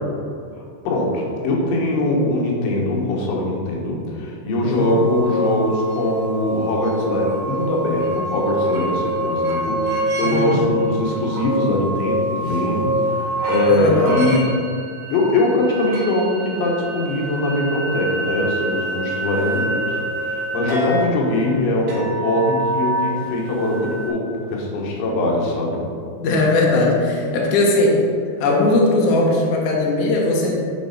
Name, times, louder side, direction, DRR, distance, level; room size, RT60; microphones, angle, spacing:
voice 1, 0.6-14.5 15.1-25.8, left 1 dB, 85° left, -2 dB, 3.7 m, -21 dB
voice 2, 4.6-5.0 10.2-10.6 13.7-14.2 26.2-28.0 28.4-30.5, left 2 dB, 65° left, -3 dB, 1.9 m, -18 dB
sound 1, 4.7-24.1, right 1 dB, 55° right, 3.0 m, -26 dB
10.0 x 4.4 x 4.2 m, 2.4 s
omnidirectional pair, 5.3 m